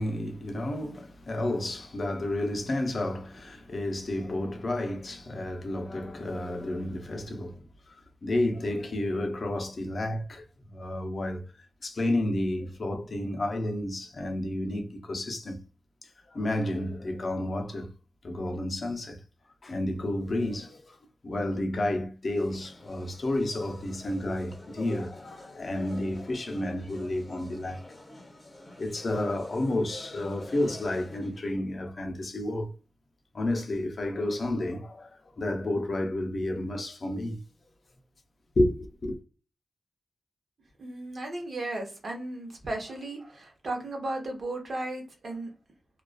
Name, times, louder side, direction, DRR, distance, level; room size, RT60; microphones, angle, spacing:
voice 1, 0.0-11.4 11.8-15.6 16.3-17.9 18.2-19.2 19.6-21.0 21.2-27.8 28.8-32.7 33.3-37.4 38.6-39.2, left 1 dB, 55° left, 0.5 m, -31 dB
sound 1, 22.3-31.4, left 1 dB, 30° left, 0.8 m, -47 dB
voice 2, 40.8-45.5, right 2 dB, 60° right, 0.9 m, -35 dB
2.4 x 2.3 x 2.2 m
wide cardioid pair, 85°, 0 cm